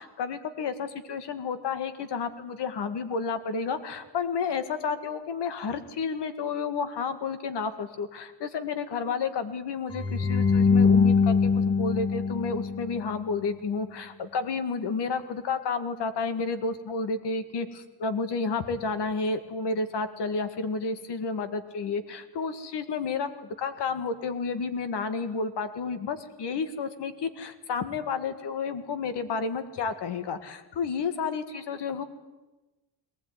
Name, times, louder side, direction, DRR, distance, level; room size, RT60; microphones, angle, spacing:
voice 1, 0.0-32.0, left 4 dB, 65° left, 11 dB, 1.9 m, -31 dB
sound 1, 9.9-13.1, left 5 dB, 10° left, 1.3 m, -22 dB
20.5 x 19.0 x 9.7 m, 1.1 s
wide cardioid pair, 175°, 44 cm